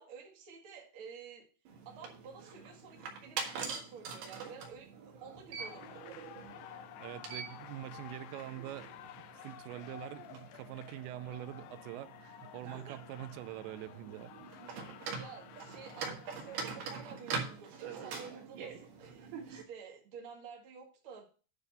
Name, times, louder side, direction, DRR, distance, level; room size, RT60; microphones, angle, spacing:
voice 1, 0.0-1.4 1.9-6.2 12.7-13.0 14.9-21.3, right 6 dB, 50° right, 1.7 m, -51 dB
sound 1, 1.7-19.6, right 5 dB, 65° right, 3.1 m, -44 dB
sound 2, 5.6-16.8, left 11 dB, 80° left, 2.3 m, -52 dB
voice 2, 7.0-8.9 9.4-14.6, right 13 dB, 80° right, 2.7 m, -44 dB
9.8 x 3.9 x 6.9 m
omnidirectional pair, 5.4 m